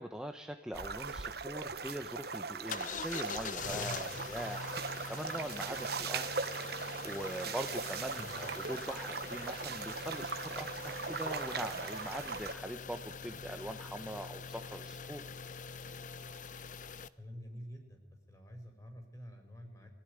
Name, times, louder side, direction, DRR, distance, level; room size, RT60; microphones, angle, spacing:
voice 1, 0.0-15.2, right 1 dB, 5° right, 5 dB, 1.1 m, -42 dB
sound 1, 0.7-12.5, right 5 dB, 60° right, 1.2 m, -40 dB
sound 2, 2.7-17.1, left 5 dB, 45° left, 0.8 m, -44 dB
voice 2, 8.1-8.5 17.2-19.9, equal, 20° left, 4 dB, 5.4 m, -49 dB
24.5 x 16.0 x 9.8 m, 0.93 s
head